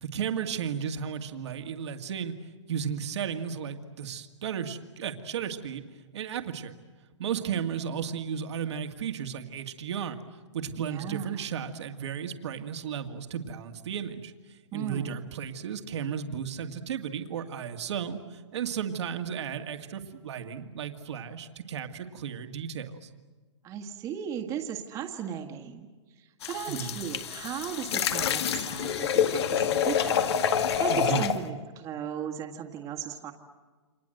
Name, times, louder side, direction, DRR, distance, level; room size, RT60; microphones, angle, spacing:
voice 1, 0.0-2.3 2.7-5.8 6.1-6.7 7.2-10.2 10.5-23.1 26.7-27.0 30.9-31.3, right 7 dB, 65° right, 6 dB, 2.2 m, -34 dB
voice 2, 10.8-11.4 14.7-15.2 23.6-25.9 26.2-30.2 30.6-33.3, right 8 dB, 20° right, 3 dB, 1.8 m, -36 dB
sound 1, 26.4-31.4, left 8 dB, 60° left, 1.8 m, -27 dB
29.5 x 25.0 x 7.9 m, 1.4 s
hypercardioid pair, 155°, 16 cm